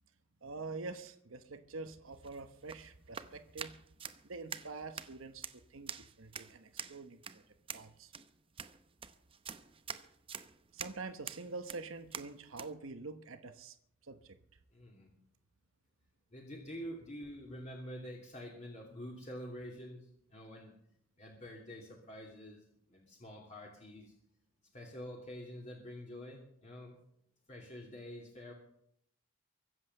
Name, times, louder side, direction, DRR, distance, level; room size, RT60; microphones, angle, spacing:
voice 1, 0.4-3.8 4.2-5.4 5.7-7.4 7.7-8.1 10.7-13.8 14.0-14.4, right 3 dB, 85° right, 9 dB, 1.1 m, -46 dB
sound 1, 2.1-12.7, right 6 dB, 25° right, 0.7 m, -47 dB
voice 2, 14.7-15.1 16.3-20.7 21.2-24.1 24.7-27.0 27.5-28.5, equal, 35° left, -2 dB, 2.8 m, -47 dB
23.5 x 8.0 x 6.6 m, 0.72 s
head